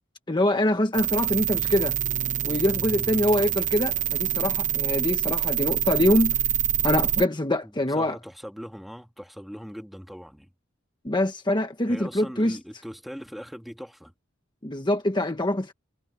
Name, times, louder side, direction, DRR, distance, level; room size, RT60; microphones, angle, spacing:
voice 1, 0.3-2.0 2.4-6.4 6.8-8.2 11.0-12.6 14.6-15.7, left 1 dB, 25° left, 1.3 m, -24 dB
sound 1, 0.9-7.2, right 9 dB, 40° right, 1.0 m, -26 dB
voice 2, 7.9-10.5 11.9-14.1, equal, ahead, 2.1 m, -40 dB
head